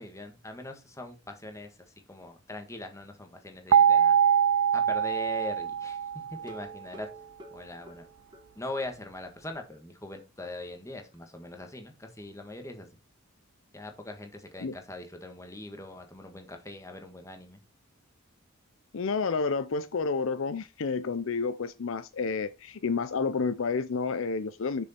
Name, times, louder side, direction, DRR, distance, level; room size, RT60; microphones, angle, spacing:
voice 1, 0.0-4.2 4.7-7.1 7.5-8.1 8.5-12.9 13.7-17.6, left 1 dB, 15° left, 1.6 m, -41 dB
sound 1, 3.7-6.7, right 8 dB, 70° right, 0.3 m, -23 dB
sound 2, 6.4-8.9 9.3-9.4 9.7-9.8 10.2-10.3, right 1 dB, 20° right, 1.5 m, -49 dB
voice 2, 18.9-24.9, left 4 dB, 65° left, 0.5 m, -30 dB
6.9 x 6.4 x 4.3 m
head